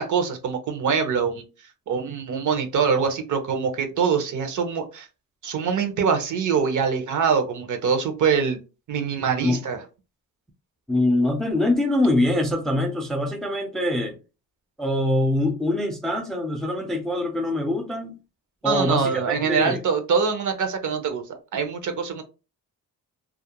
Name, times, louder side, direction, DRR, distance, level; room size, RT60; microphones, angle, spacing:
voice 1, 0.0-1.4 1.9-5.1 5.4-8.6 8.9-9.8 18.6-21.2 21.5-22.2, right 6 dB, 55° right, 0.6 m, -24 dB
voice 2, 10.9-14.2 14.8-18.2 18.6-19.8, left 1 dB, ahead, 0.4 m, -24 dB
2.4 x 2.1 x 2.8 m
cardioid pair, 110°, 35 cm